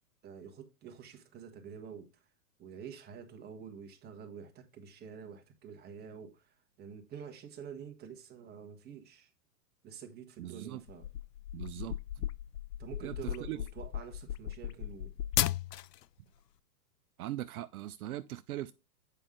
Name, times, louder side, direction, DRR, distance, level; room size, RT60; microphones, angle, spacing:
voice 1, 0.2-2.1 2.6-9.3 9.8-11.1 12.8-15.1, right 7 dB, 20° right, 1.3 m, -48 dB
voice 2, 10.4-10.8 11.5-12.2 13.0-13.6 17.2-18.7, right 14 dB, 65° right, 0.6 m, -40 dB
sound 1, 10.9-16.0, left 12 dB, 90° left, 0.5 m, -36 dB
8.3 x 5.4 x 3.7 m
hypercardioid pair, 130°, 47 cm